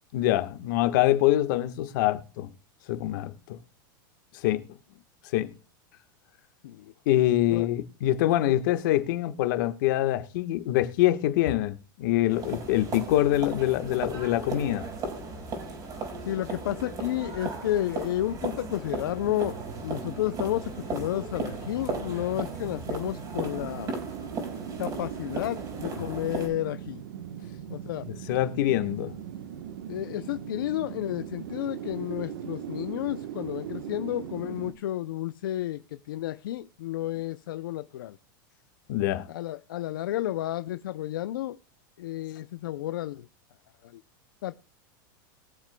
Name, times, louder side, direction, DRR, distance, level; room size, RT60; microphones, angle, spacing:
voice 1, 0.1-2.5 2.9-3.6 4.4-4.6 5.3-5.5 7.1-14.9 28.3-29.1 38.9-39.3, left 14 dB, 65° left, 1.3 m, -25 dB
sound 1, 12.3-26.5, right 3 dB, 35° right, 4.8 m, -36 dB
voice 2, 16.3-19.6 19.8-23.9 24.8-27.0 27.7-28.0 29.9-38.2 39.3-41.6 42.0-43.3 44.4-44.6, left 13 dB, 80° left, 0.5 m, -31 dB
sound 2, 19.0-34.7, right 9 dB, 80° right, 1.1 m, -40 dB
21.5 x 7.4 x 2.2 m
supercardioid pair, 135°, 11 cm